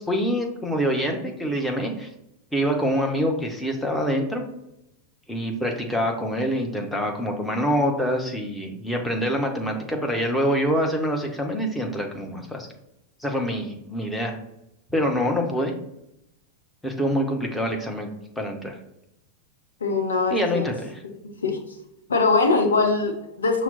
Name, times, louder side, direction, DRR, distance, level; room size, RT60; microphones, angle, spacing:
voice 1, 0.1-2.1 2.5-4.4 5.3-12.7 13.2-14.4 14.9-15.7 16.8-18.7 20.3-20.9, equal, 5° left, 1 dB, 0.7 m, -25 dB
voice 2, 19.8-20.7 21.4-21.6 22.1-23.6, left 3 dB, 70° left, 2 dB, 0.7 m, -22 dB
5.8 x 2.0 x 4.0 m, 0.84 s
figure-of-eight pair, 90°, 0 cm